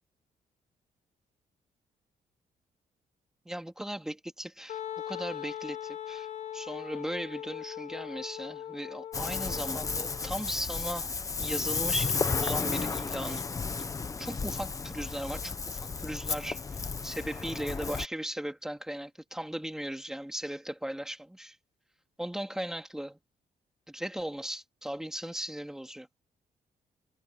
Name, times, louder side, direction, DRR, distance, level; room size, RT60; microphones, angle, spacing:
voice 1, 3.5-4.8 5.1-6.3 6.5-11.1 11.4-13.4 13.8-13.9 14.2-21.6 22.2-23.2 23.9-26.1, right 1 dB, 5° right, 2.3 m, -37 dB
Wind instrument woodwind instrument, 4.7-10.3, left 10 dB, 50° left, 1.2 m, -40 dB
Ocean, 9.1-18.1, left 4 dB, 20° left, 0.8 m, -33 dB
cardioid pair, 165°, 15 cm